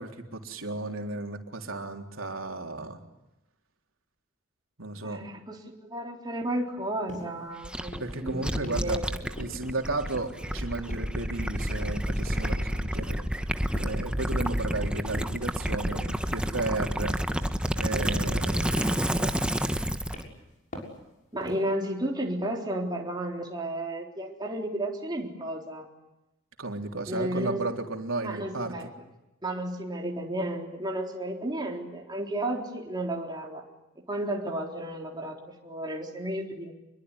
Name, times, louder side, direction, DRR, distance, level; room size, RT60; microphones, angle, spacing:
voice 1, 0.0-3.0 4.8-5.2 8.0-9.0 9.4-13.3 13.8-17.2 17.8-19.3 26.6-28.9, right 2 dB, 80° right, 3 dB, 3.7 m, -34 dB
voice 2, 5.0-9.3 21.3-25.9 27.1-27.6 28.2-28.9 29.4-33.6 34.0-36.7, right 1 dB, 20° right, 0 dB, 3.9 m, -33 dB
sound 1, 7.1-7.3 7.9-8.2 8.6-8.9 9.4-9.8 10.1-10.6 10.9-11.2 11.6-11.9 12.3-12.5 13.0-13.3 13.8-14.1 14.4-14.8 15.2-15.5 15.9-16.2 16.6-17.0 17.3-17.6 18.0-18.5 18.8-19.1 19.5-19.8 20.1-20.4 20.7-21.0 21.4-21.7, left 1 dB, 40° left, 6.7 m, -43 dB
Gurgling / Liquid, 7.6-20.2, equal, 5° right, 1.2 m, -29 dB
27.0 x 22.5 x 9.8 m, 0.94 s
head